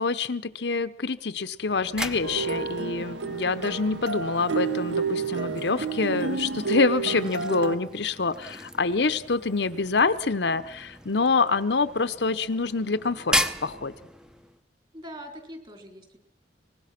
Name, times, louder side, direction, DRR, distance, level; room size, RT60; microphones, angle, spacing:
voice 1, 0.0-13.9, left 4 dB, 70° left, 12 dB, 0.9 m, -26 dB
sound 1, 1.6-14.6, equal, 5° right, 0.8 m, -37 dB
sound 2, 2.2-7.8, right 5 dB, 80° right, 1.6 m, -30 dB
voice 2, 14.9-16.2, equal, 25° right, 5 dB, 3.9 m, -42 dB
24.5 x 20.0 x 5.9 m, 0.74 s
head